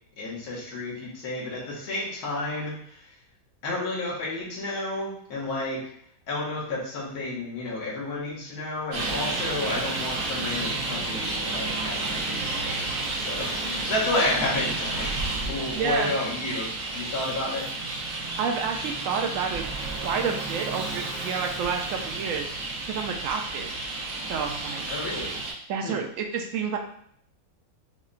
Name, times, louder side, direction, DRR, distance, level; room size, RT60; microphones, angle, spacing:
voice 1, 0.2-3.1 3.6-5.8 6.3-17.7 24.9-25.3 25.8-26.0, left 2 dB, 80° left, -5 dB, 1.5 m, -31 dB
Traffic noise roadway noise, 8.9-25.5, right 2 dB, 85° right, 1.3 m, -31 dB
voice 2, 15.8-16.1 18.4-19.6 20.0-22.5 22.9-23.7 24.3-24.9 25.7-26.8, right 6 dB, 70° right, 4 dB, 0.9 m, -29 dB
5.5 x 2.1 x 2.5 m, 0.65 s
omnidirectional pair, 1.6 m